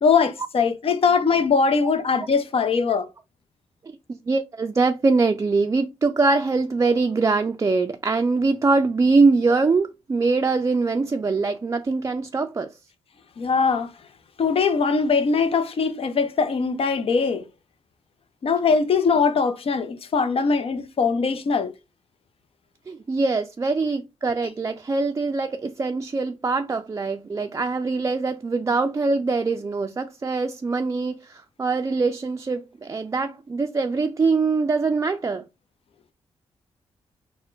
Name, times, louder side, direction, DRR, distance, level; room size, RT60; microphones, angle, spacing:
voice 1, 0.0-3.1 13.4-13.9 14.4-17.4 18.4-21.7, left 5 dB, 55° left, 0.7 m, -21 dB
voice 2, 4.1-12.7 22.9-35.4, right 3 dB, 25° right, 0.4 m, -23 dB
4.2 x 2.1 x 3.9 m
cardioid pair, 65°, 11 cm